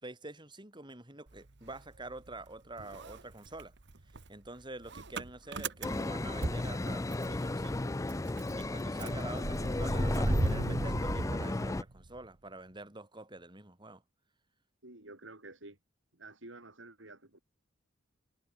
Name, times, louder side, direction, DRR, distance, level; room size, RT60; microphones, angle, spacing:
voice 1, 0.0-3.7 4.3-7.9 8.6-14.0, right 2 dB, 25° right, 5.2 m, -46 dB
Motor vehicle (road) / Engine starting, 1.3-2.5 2.8-7.4 7.8-7.9 8.1-12.2, right 2 dB, 65° right, 1.2 m, -37 dB
sound 1, 5.8-11.8, left 2 dB, 15° left, 0.4 m, -34 dB
voice 2, 14.8-15.8 16.1-17.4, right 2 dB, 85° right, 6.7 m, -50 dB
head